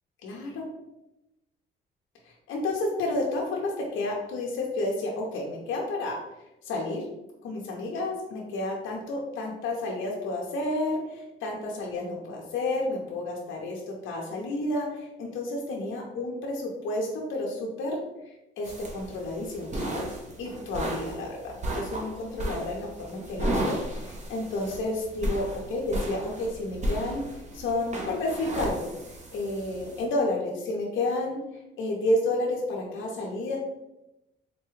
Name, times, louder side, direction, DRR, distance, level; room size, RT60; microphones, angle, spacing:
voice 1, 0.2-0.6 2.5-6.2 6.6-7.0 7.4-18.0 18.6-20.1 20.4-27.2 27.5-28.9 29.3-31.4 31.8-33.6, left 2 dB, 80° left, -2 dB, 0.7 m, -31 dB
sound 1, 18.6-30.0, right 1 dB, 35° right, 0.8 m, -34 dB
4.0 x 2.2 x 3.1 m, 0.91 s
cardioid pair, 90°, 20 cm